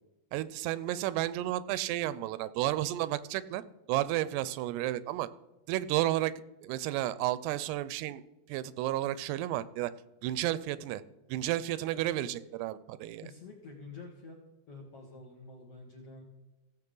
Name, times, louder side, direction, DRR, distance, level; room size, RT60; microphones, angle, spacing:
voice 1, 0.3-3.6 3.9-5.3 5.7-6.3 6.6-8.2 8.5-9.9 10.2-11.0 11.3-13.3, right 14 dB, 85° right, 16 dB, 2.6 m, -32 dB
voice 2, 13.2-14.4 14.7-16.2, left 3 dB, 55° left, -2 dB, 1.8 m, -48 dB
16.5 x 7.7 x 3.8 m, 1.0 s
omnidirectional pair, 4.8 m